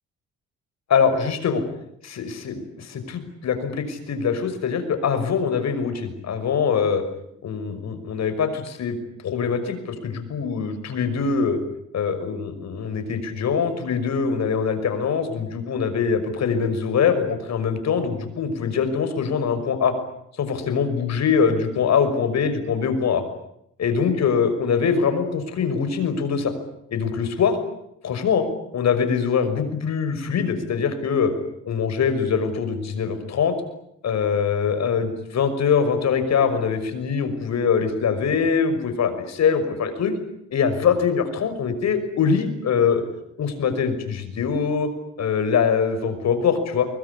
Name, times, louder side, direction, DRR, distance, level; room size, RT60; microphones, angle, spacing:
voice 1, 0.9-1.6 2.0-7.0 7.4-9.0 9.2-11.6 11.9-19.9 20.4-23.2 23.8-26.5 26.9-27.6 28.0-28.5 28.7-31.3 31.6-33.5 34.0-40.1 40.5-43.0 43.4-44.9 45.2-46.9, left 6 dB, 60° left, 9 dB, 6.0 m, -23 dB
23.5 x 22.0 x 10.0 m, 0.77 s
cardioid pair, 90°, 30 cm